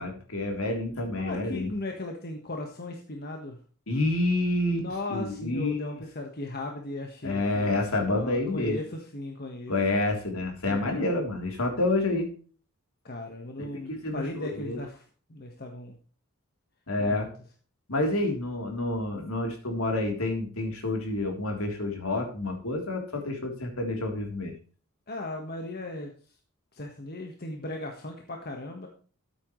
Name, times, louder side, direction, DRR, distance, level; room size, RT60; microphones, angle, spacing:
voice 1, 0.0-1.7 3.9-5.8 7.2-8.8 9.7-12.3 13.6-14.8 16.9-17.3 17.9-24.5, left 2 dB, 70° left, 2 dB, 3.5 m, -28 dB
voice 2, 1.1-3.6 4.7-7.8 8.1-9.7 10.6-11.1 13.0-15.0 15.3-16.0 17.0-17.3 25.1-26.1 26.7-28.9, left 2 dB, 45° left, 2 dB, 1.5 m, -37 dB
13.0 x 8.9 x 3.2 m, 0.40 s
head